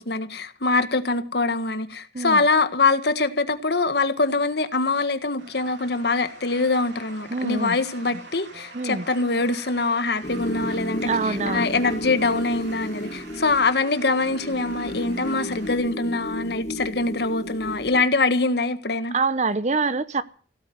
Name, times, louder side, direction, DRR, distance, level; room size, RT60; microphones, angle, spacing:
voice 1, 0.0-19.1, left 3 dB, 65° left, 1.7 m, -24 dB
sound 1, 5.4-15.8, right 3 dB, 80° right, 3.8 m, -45 dB
voice 2, 7.3-7.8 8.7-9.0 11.1-11.7 19.1-20.2, right 4 dB, 40° right, 0.9 m, -25 dB
sound 2, 10.2-18.1, equal, 40° left, 1.5 m, -33 dB
16.5 x 9.0 x 9.4 m
head